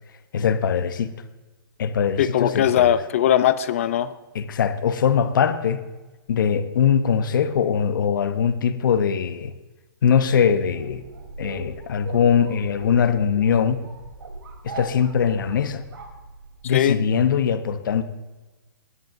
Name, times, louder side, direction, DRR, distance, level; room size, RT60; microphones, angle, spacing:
voice 1, 0.3-1.1 1.8-3.0 4.3-5.8 6.3-9.5 10.0-11.0 11.4-13.8 14.6-15.8 16.6-18.0, left 7 dB, 60° left, 0.8 m, -21 dB
voice 2, 2.2-4.1 16.7-17.0, left 10 dB, 35° left, 0.5 m, -19 dB
sound 1, 10.6-16.8, right 2 dB, 80° right, 3.4 m, -40 dB
20.5 x 10.5 x 2.6 m
hypercardioid pair, 175°, 12 cm